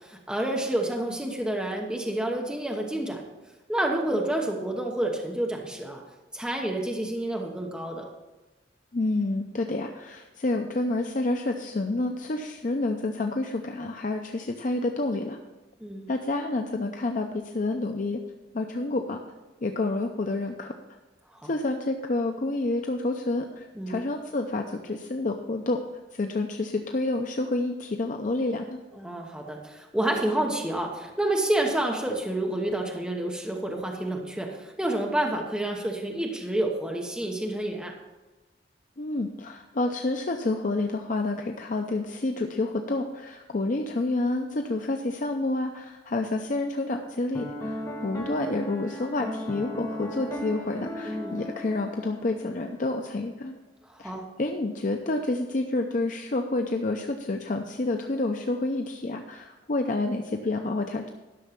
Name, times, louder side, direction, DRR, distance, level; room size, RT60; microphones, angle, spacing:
voice 1, 0.0-3.2 3.7-6.0 6.3-8.1 15.8-16.1 21.4-21.5 23.8-24.0 28.9-38.0 51.1-51.4 53.9-54.3, right 1 dB, 5° right, 0 dB, 1.0 m, -29 dB
voice 2, 8.9-15.4 16.1-18.2 18.5-19.2 19.6-20.7 21.4-25.8 26.1-28.8 39.0-53.5 54.0-54.1 54.4-61.1, left 2 dB, 45° left, 4 dB, 0.6 m, -29 dB
Piano, 47.3-52.6, equal, 15° left, 1.2 m, -36 dB
11.5 x 6.3 x 5.9 m, 1.1 s
head